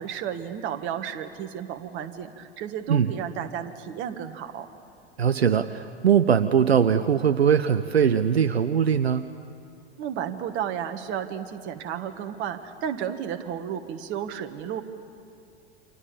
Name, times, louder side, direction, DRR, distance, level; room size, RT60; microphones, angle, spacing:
voice 1, 0.0-4.7 10.0-14.8, right 9 dB, 35° right, 7 dB, 1.8 m, -32 dB
voice 2, 5.2-9.2, right 7 dB, 70° right, 12 dB, 0.8 m, -21 dB
29.5 x 25.5 x 7.2 m, 2.5 s
figure-of-eight pair, 90°, 32 cm